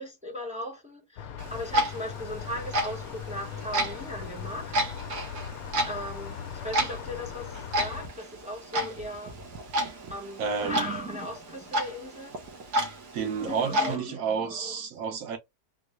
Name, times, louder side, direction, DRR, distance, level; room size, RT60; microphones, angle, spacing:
voice 1, 0.0-4.8 5.8-9.3 10.1-12.4 13.4-14.8, left 1 dB, 5° right, 0.8 m, -38 dB
sound 1, 1.2-8.1, left 8 dB, 75° left, 1.0 m, -39 dB
Clock, 1.4-14.0, right 1 dB, 80° right, 1.6 m, -32 dB
voice 2, 10.4-10.9 13.1-15.4, right 6 dB, 65° right, 1.2 m, -30 dB
3.9 x 2.0 x 3.0 m
omnidirectional pair, 1.7 m